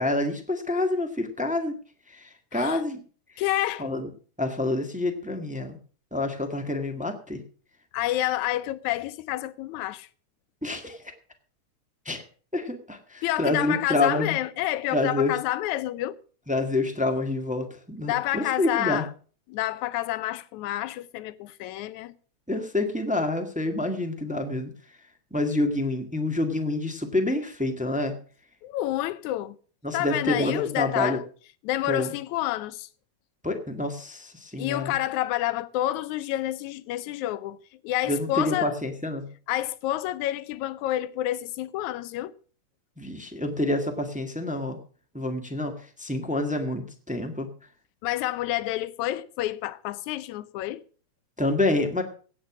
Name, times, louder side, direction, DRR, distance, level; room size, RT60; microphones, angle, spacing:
voice 1, 0.0-1.7 2.1-3.0 3.8-4.1 4.4-5.8 6.1-7.4 10.6-11.0 12.0-12.2 12.5-14.4 14.9-15.3 16.5-19.0 22.5-24.7 25.3-28.1 29.8-31.2 31.9-32.1 33.4-34.9 38.1-39.2 43.0-44.8 45.1-47.5 51.4-52.0, left 2 dB, 5° right, 0.9 m, -27 dB
voice 2, 3.4-3.9 7.9-10.1 13.2-16.2 18.1-19.1 19.5-22.1 28.6-29.6 29.9-31.2 31.6-32.9 34.6-37.6 37.8-38.8 39.5-42.3 48.0-50.8, left 14 dB, 80° left, 2.1 m, -29 dB
17.0 x 8.3 x 6.0 m
omnidirectional pair, 3.4 m